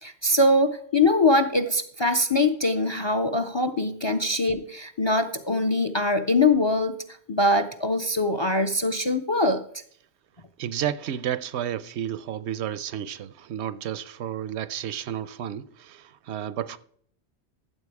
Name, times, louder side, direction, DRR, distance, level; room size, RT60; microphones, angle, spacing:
voice 1, 0.0-7.0 7.3-9.6, left 2 dB, 35° left, 0.4 m, -23 dB
voice 2, 10.6-16.8, right 10 dB, 80° right, 0.9 m, -31 dB
14.0 x 7.6 x 4.7 m
omnidirectional pair, 1.2 m